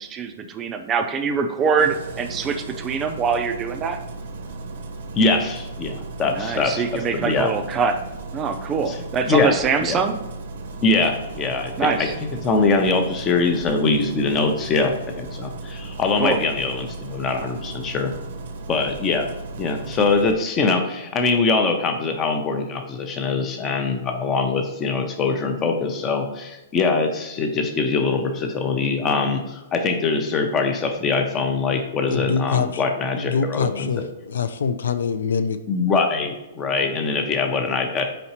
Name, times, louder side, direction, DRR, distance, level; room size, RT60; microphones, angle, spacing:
voice 1, 0.0-4.0 6.2-8.0 8.3-10.2 11.8-12.1 16.2-16.4, right 5 dB, 20° right, 7 dB, 0.3 m, -24 dB
Engine starting, 1.8-20.3, right 3 dB, 70° right, 0.6 m, -35 dB
voice 2, 5.1-7.5 8.9-9.5 9.8-10.0 10.8-18.2 18.7-19.3 19.6-34.0 35.7-38.0, left 4 dB, 20° left, 5 dB, 0.6 m, -23 dB
voice 3, 32.1-32.8 33.2-35.6, left 6 dB, 80° left, 10 dB, 0.3 m, -24 dB
4.2 x 3.9 x 2.9 m, 0.99 s
hypercardioid pair, 145°, 0 cm